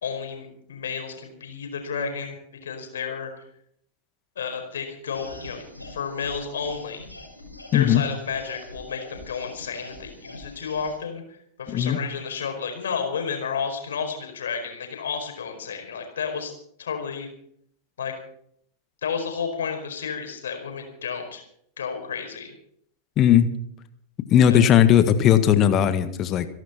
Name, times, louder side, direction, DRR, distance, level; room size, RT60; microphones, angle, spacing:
voice 1, 0.0-3.4 4.3-7.1 7.7-16.5 16.8-17.3 18.0-18.1 19.0-21.4 21.8-22.5 24.4-24.6, left 6 dB, 65° left, 4 dB, 4.8 m, -31 dB
sound 1, 5.0-11.0, left 1 dB, 90° left, 4.9 m, -43 dB
voice 2, 7.7-8.0 11.7-12.0 23.2-23.5 24.3-26.5, left 10 dB, 35° left, 11 dB, 1.7 m, -17 dB
27.5 x 11.5 x 4.4 m, 0.68 s
figure-of-eight pair, 90°, 0 cm